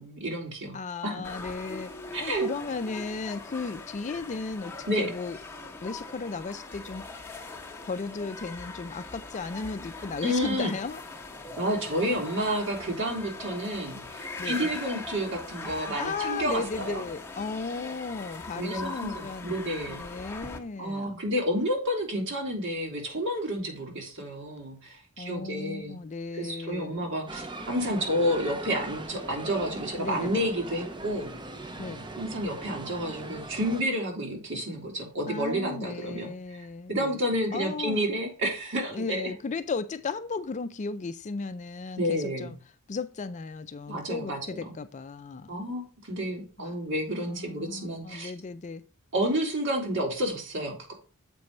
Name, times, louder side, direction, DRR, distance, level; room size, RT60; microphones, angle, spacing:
voice 1, 0.0-1.2 2.1-2.5 4.9-5.1 10.2-10.7 11.6-17.0 18.5-20.0 20.8-26.0 26.3-31.3 32.2-39.3 42.0-42.5 43.9-44.7 45.5-48.3 49.1-50.9, equal, 60° right, 2.8 m, -30 dB
voice 2, 0.7-1.9 2.2-5.4 5.8-7.2 7.8-11.0 14.4-14.7 16.0-19.6 19.9-21.2 25.2-27.1 30.0-30.5 31.8-32.1 35.3-37.2 37.5-38.0 38.9-42.6 42.9-45.5 46.6-46.8 47.3-48.8, left 4 dB, 35° left, 0.4 m, -35 dB
sound 1, 1.2-20.6, left 3 dB, 10° left, 1.1 m, -41 dB
sound 2, 27.3-33.8, right 2 dB, 20° right, 0.8 m, -40 dB
7.5 x 4.6 x 5.3 m
head